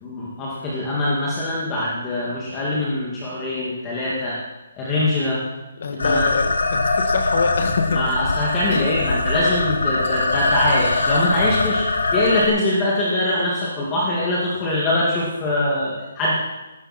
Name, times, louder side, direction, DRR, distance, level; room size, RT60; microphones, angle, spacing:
voice 1, 0.0-4.4 4.8-5.4 5.9-6.3 7.9-11.9 12.1-16.3, left 1 dB, 15° left, -6 dB, 2.2 m, -23 dB
voice 2, 5.8-8.0 8.7-8.9, left 4 dB, 50° left, 5 dB, 2.2 m, -25 dB
sound 1, 6.0-12.5, left 3 dB, 85° left, 2.3 m, -22 dB
17.5 x 13.0 x 4.4 m, 1.1 s
hypercardioid pair, 170°, 0 cm